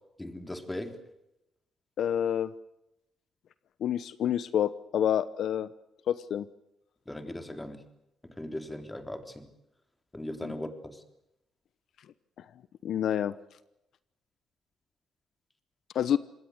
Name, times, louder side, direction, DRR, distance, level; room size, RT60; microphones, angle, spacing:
voice 1, 0.2-1.0 7.1-7.8 8.2-9.5 10.1-11.0, left 1 dB, 10° left, 8 dB, 3.6 m, -38 dB
voice 2, 2.0-2.5 3.8-5.7 6.1-6.4 10.4-10.5 12.8-13.3 15.9-16.2, left 9 dB, 70° left, 16 dB, 0.9 m, -28 dB
26.5 x 20.5 x 8.0 m, 0.88 s
cardioid pair, 90°, 0 cm